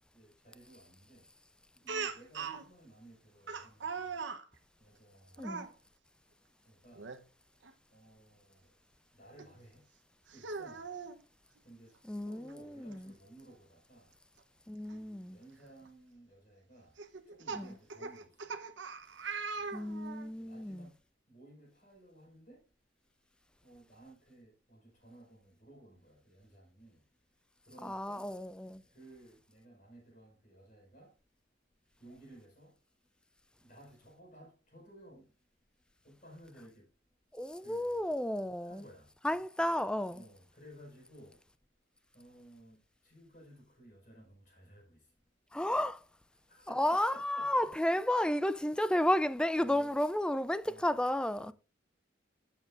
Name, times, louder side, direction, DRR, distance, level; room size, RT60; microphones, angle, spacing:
voice 1, 0.1-1.3 1.7-4.2 4.8-5.7 6.6-7.1 7.9-8.7 9.1-9.8 10.3-11.1 11.6-14.1 14.8-17.0 17.3-18.6 19.5-21.0 21.3-22.6 23.6-27.0 27.6-28.3 28.9-31.1 32.0-32.7 33.6-35.3 36.0-36.9 37.6-38.0 38.6-39.1 40.1-41.4 42.1-45.1 46.5-48.3 49.5-49.9 50.6-51.0 51.4-51.5, right 1 dB, 45° left, 5.1 m, -57 dB
Speech, 1.9-2.6 3.5-4.4 5.4-5.7 6.9-7.2 7.6-7.7 9.4-9.5 10.3-11.2 12.5-12.6 12.9-13.0 14.9-15.0 15.6-15.9 17.0-20.3, right 5 dB, 75° right, 1.0 m, -40 dB
voice 2, 12.1-13.1 14.7-15.4 17.5-17.7 19.7-20.9 27.8-28.8 37.3-38.8 39.2-40.2 45.5-46.0 46.7-51.5, left 1 dB, 5° left, 0.4 m, -32 dB
14.5 x 7.5 x 2.5 m
head